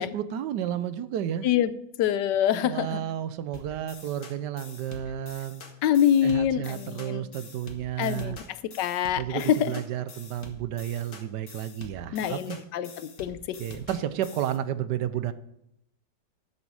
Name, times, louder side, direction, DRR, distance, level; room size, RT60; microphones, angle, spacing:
voice 1, 0.0-1.5 2.6-5.6 6.2-8.4 9.2-12.6 13.6-15.3, right 10 dB, 80° right, 13 dB, 1.3 m, -32 dB
voice 2, 2.0-3.0 5.8-7.2 8.0-9.7 12.1-12.9 13.2-13.6, left 10 dB, 85° left, 14 dB, 1.3 m, -25 dB
sound 1, 3.5-14.6, left 3 dB, 60° left, 1.8 m, -46 dB
11.0 x 7.2 x 4.8 m, 0.78 s
omnidirectional pair, 1.9 m